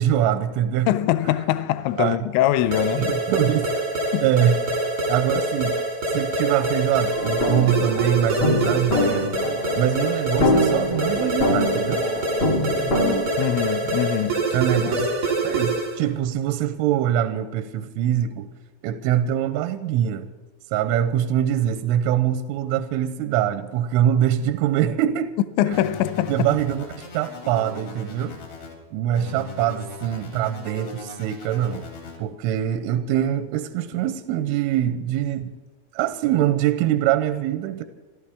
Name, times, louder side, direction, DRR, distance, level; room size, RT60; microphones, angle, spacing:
voice 1, 0.0-0.9 1.3-1.4 2.0-2.2 3.0-3.7 4.2-4.6 5.1-5.8 6.1-9.4 9.8-12.1 14.5-15.1 15.4-18.5 18.8-20.3 20.7-25.3 25.7-25.8 26.3-28.4 28.9-31.9 32.2-35.6 35.9-37.8, right 10 dB, 85° right, 3.0 m, -23 dB
voice 2, 0.9-3.1 4.1-4.3 13.4-14.4 25.6-26.5, left 13 dB, 90° left, 2.5 m, -23 dB
sound 1, 2.7-16.0, right 2 dB, 45° right, 1.1 m, -25 dB
sound 2, 7.1-13.1, left 1 dB, 45° left, 1.6 m, -24 dB
sound 3, 25.7-28.7 29.1-32.2, left 3 dB, 65° left, 5.7 m, -39 dB
29.5 x 13.0 x 3.5 m
omnidirectional pair, 5.9 m